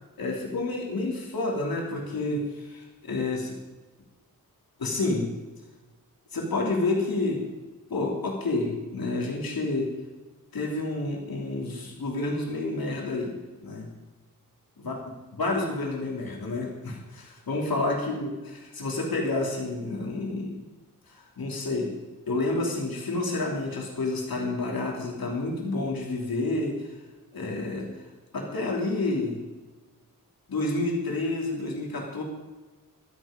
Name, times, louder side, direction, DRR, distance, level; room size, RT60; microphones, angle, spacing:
voice 1, 0.2-3.5 4.8-5.3 6.3-7.4 7.9-9.9 10.5-13.3 13.6-13.9 14.8-15.0 15.4-20.6 21.1-21.9 22.2-27.0 27.3-28.1 28.3-29.4 30.5-32.2, left 2 dB, 75° left, -1 dB, 3.2 m, -29 dB
24.0 x 8.3 x 5.2 m, 1.2 s
wide cardioid pair, 125°, 35 cm